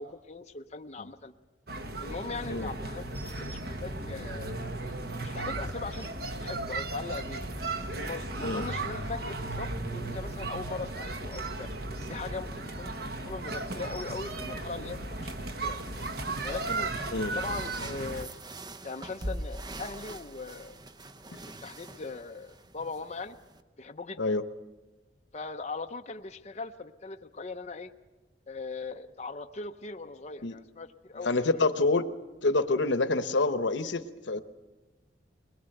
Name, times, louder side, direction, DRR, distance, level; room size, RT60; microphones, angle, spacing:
voice 1, 0.0-1.3 2.0-4.5 5.2-6.1 6.4-7.4 7.9-11.7 12.1-15.3 15.6-15.8 16.4-16.9 17.3-18.3 18.8-20.8 21.6-23.4 23.8-24.2 25.3-27.9 28.5-31.6, left 3 dB, 35° left, 5 dB, 0.7 m, -40 dB
sound 1, 1.7-18.2, right 2 dB, 60° right, 1.5 m, -35 dB
sound 2, 15.4-23.6, right 1 dB, 25° right, 0.7 m, -43 dB
voice 2, 31.2-32.1 32.4-34.4, left 3 dB, 85° left, 11 dB, 1.0 m, -27 dB
21.5 x 21.0 x 7.9 m, 1.2 s
head